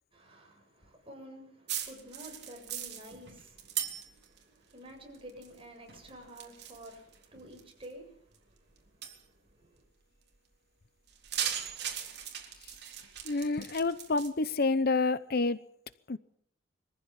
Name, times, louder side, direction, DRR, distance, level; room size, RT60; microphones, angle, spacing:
voice 1, 0.1-9.9, equal, 30° right, 7.6 m, -51 dB
sound 1, 1.7-4.4 4.7-5.6 5.9-7.9 8.3-8.4 9.0-9.2 11.1-14.3, right 9 dB, 60° right, 3.7 m, -38 dB
voice 2, 13.2-15.7 16.1-16.2, left 3 dB, 55° left, 0.8 m, -28 dB
23.5 x 15.0 x 9.0 m
head